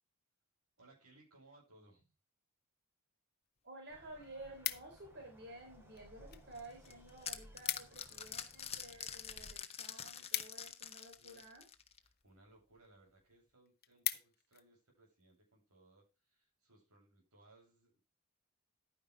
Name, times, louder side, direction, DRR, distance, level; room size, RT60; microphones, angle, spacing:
voice 1, 0.8-2.1 11.1-11.4 12.0-18.0, right 2 dB, 85° right, -1 dB, 7.9 m, -65 dB
sound 1, 3.4-3.5 3.9-5.2 5.9-6.5 6.8-6.9 7.1-7.2 7.5-8.1 8.4-11.3 12.0-12.3 12.8-12.9 13.3-13.4 13.7-14.7 15.1-15.4, left 13 dB, 45° left, 0.9 m, -42 dB
voice 2, 3.6-11.6, right 2 dB, 55° right, 1 dB, 3.7 m, -53 dB
sound 2, 3.9-9.6, equal, 10° right, 3.2 m, -61 dB
sound 3, 6.6-12.1, left 8 dB, 30° left, 1.2 m, -46 dB
11.5 x 9.8 x 3.5 m, 0.29 s
head